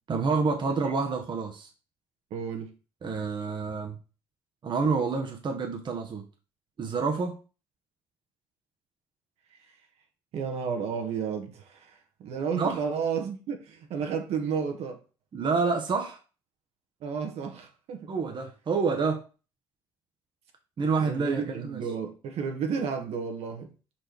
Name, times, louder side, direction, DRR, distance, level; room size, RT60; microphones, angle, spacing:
voice 1, 0.1-1.7 3.0-4.0 4.6-6.3 6.8-7.4 12.6-12.8 15.3-16.2 18.1-19.2 20.8-21.8, right 4 dB, 45° right, 1.2 m, -28 dB
voice 2, 2.3-2.8 9.5-9.8 10.3-15.0 17.0-18.1 20.8-23.7, right 6 dB, 70° right, 1.5 m, -32 dB
5.0 x 4.5 x 4.5 m
hypercardioid pair, 60°, 11 cm